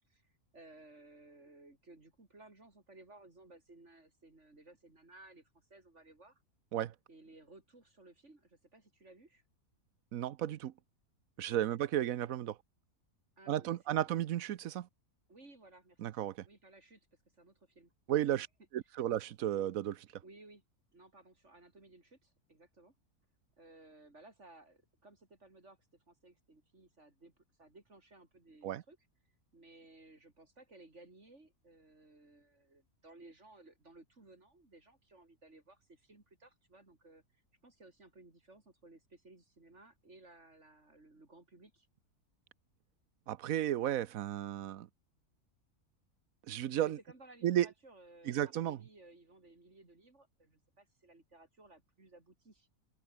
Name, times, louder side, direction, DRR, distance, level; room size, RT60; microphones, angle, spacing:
voice 1, 0.1-6.4 7.1-9.4 11.5-11.8 13.4-14.1 15.3-17.1 17.3-17.9 20.2-20.6 20.9-22.9 23.6-25.8 26.1-29.0 29.5-41.9 46.8-52.7, right 2 dB, 50° right, 4.2 m, -59 dB
voice 2, 10.1-10.7 11.4-12.6 13.5-14.9 16.0-16.3 18.1-18.5 18.7-20.1 28.6-28.8 43.3-44.9 46.5-47.0 47.4-47.7 48.3-48.8, right 12 dB, 70° right, 1.1 m, -33 dB
omnidirectional pair, 1.6 m